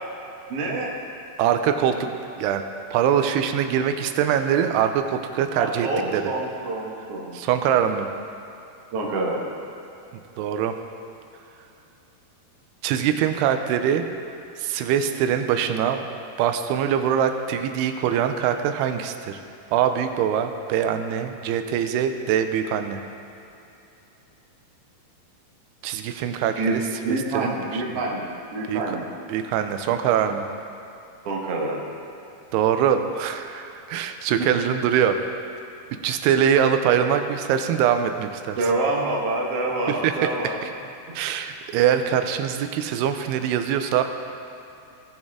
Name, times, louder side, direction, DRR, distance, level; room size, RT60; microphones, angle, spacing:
voice 1, 0.5-1.0 5.5-7.4 8.9-9.5 26.6-26.8 27.0-29.1 31.3-31.8 38.6-40.5 41.1-41.2, right 2 dB, 60° right, -2 dB, 1.6 m, -27 dB
voice 2, 1.4-2.1 2.4-2.6 2.9-6.2 7.3-8.1 10.4-10.7 12.8-14.1 14.6-16.0 16.4-19.4 19.7-23.0 25.8-27.8 28.7-28.8 29.3-30.5 32.5-35.2 36.0-38.6 39.9-40.1 41.2-44.0, right 9 dB, 90° right, 7 dB, 2.6 m, -23 dB
17.5 x 6.3 x 3.6 m, 2.8 s
omnidirectional pair, 4.5 m